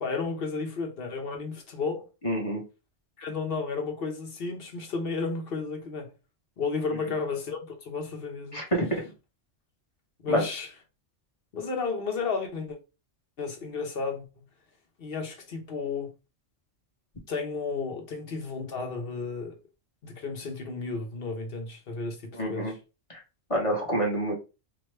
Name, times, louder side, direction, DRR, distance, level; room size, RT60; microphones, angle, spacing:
voice 1, 0.0-2.1 3.2-6.1 6.6-8.6 10.2-10.7 11.5-12.8 13.4-14.2 15.0-16.1 17.3-19.6 20.0-22.8, left 4 dB, 55° left, 1.0 m, -33 dB
voice 2, 2.2-2.6 8.5-9.0 10.3-10.4 22.4-22.7 23.1-23.2 23.5-24.3, right 1 dB, 30° left, 1.1 m, -27 dB
4.8 x 2.3 x 3.2 m
omnidirectional pair, 1.3 m